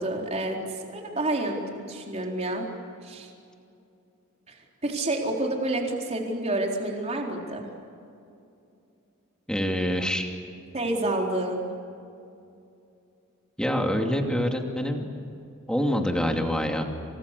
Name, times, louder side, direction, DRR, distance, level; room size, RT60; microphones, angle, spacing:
voice 1, 0.0-2.7 3.0-3.3 4.5-4.6 4.8-7.6 10.7-11.7, right 1 dB, 30° right, 0 dB, 4.1 m, -29 dB
voice 2, 9.5-10.4 13.6-15.0 15.7-16.8, equal, 5° left, 2 dB, 2.7 m, -26 dB
29.5 x 26.5 x 6.8 m, 2.6 s
head